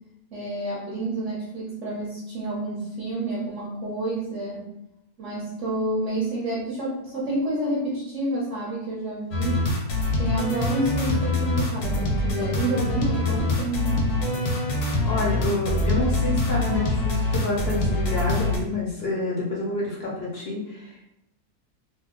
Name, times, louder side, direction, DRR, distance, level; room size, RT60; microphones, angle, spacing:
voice 1, 0.3-4.6 5.2-9.6 10.2-14.0, right 1 dB, 60° right, -5 dB, 0.9 m, -29 dB
sound 1, 9.3-18.6, left 2 dB, 80° left, 1.2 m, -24 dB
voice 2, 15.0-21.0, left 2 dB, 60° left, -3 dB, 0.6 m, -28 dB
2.7 x 2.0 x 3.5 m, 0.85 s
omnidirectional pair, 1.6 m